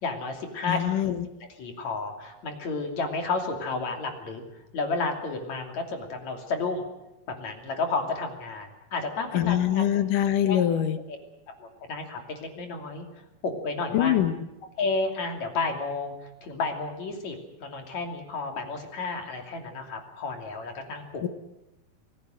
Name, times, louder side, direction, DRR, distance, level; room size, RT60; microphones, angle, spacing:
voice 1, 0.0-1.2 1.6-4.4 4.7-6.8 7.4-9.8 10.5-10.6 11.6-13.1 13.4-14.2 14.8-16.1 16.4-21.3, left 3 dB, 45° left, 4 dB, 3.7 m, -31 dB
voice 2, 0.7-1.2 9.3-11.0 13.9-14.4 21.2-21.3, left 11 dB, 65° left, 11 dB, 2.3 m, -24 dB
27.0 x 17.5 x 6.5 m, 0.95 s
omnidirectional pair, 4.8 m